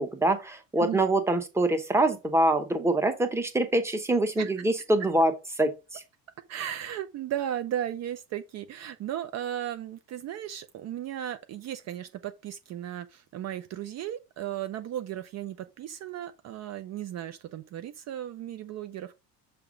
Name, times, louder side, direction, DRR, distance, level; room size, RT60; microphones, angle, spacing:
voice 1, 0.0-5.3 5.6-6.0, right 1 dB, 5° right, 0.9 m, -25 dB
voice 2, 6.5-19.2, right 11 dB, 45° right, 0.6 m, -35 dB
6.9 x 3.5 x 5.0 m
cardioid pair, 150°, 37 cm